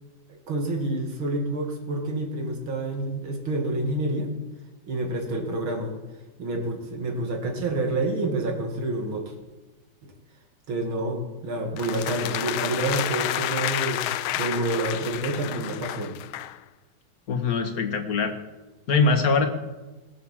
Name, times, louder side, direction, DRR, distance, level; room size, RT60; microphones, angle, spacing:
voice 1, 0.3-4.3 4.9-5.9 6.4-9.3 10.0-10.1 10.7-14.0 14.3-16.1, right 2 dB, 80° right, 3 dB, 3.0 m, -28 dB
sound 1, 11.8-16.6, left 14 dB, 90° left, 1.4 m, -30 dB
voice 2, 17.3-18.3 18.9-19.5, left 4 dB, 50° left, 6 dB, 1.8 m, -22 dB
19.0 x 7.5 x 7.4 m, 1.1 s
omnidirectional pair, 2.2 m